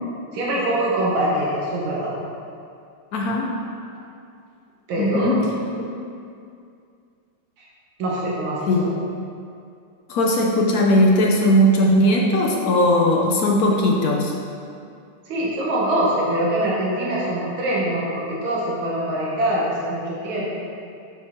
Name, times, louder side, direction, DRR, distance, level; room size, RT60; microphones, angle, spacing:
voice 1, 0.3-2.1 4.9-5.5 8.0-8.9 15.3-20.5, right 1 dB, 80° right, -6 dB, 2.0 m, -23 dB
voice 2, 3.1-3.6 5.0-5.5 5.8-5.9 8.7-8.8 10.1-14.3, equal, 65° left, 0 dB, 0.9 m, -18 dB
6.2 x 4.5 x 5.7 m, 2.4 s
omnidirectional pair, 2.2 m